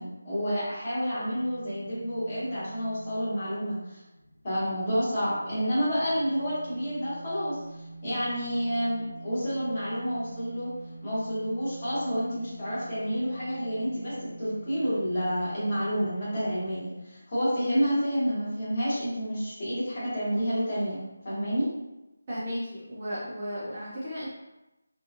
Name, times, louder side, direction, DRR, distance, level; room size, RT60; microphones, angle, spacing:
voice 1, 0.0-4.0 4.4-10.7 11.0-21.7, equal, 25° left, -11 dB, 1.1 m, -29 dB
sound 1, 1.3-16.8, right 2 dB, 85° left, 0.8 m, -46 dB
voice 2, 22.3-24.3, equal, 20° right, -10 dB, 0.4 m, -34 dB
2.9 x 2.3 x 2.5 m, 0.98 s
figure-of-eight pair, 175°, 0 cm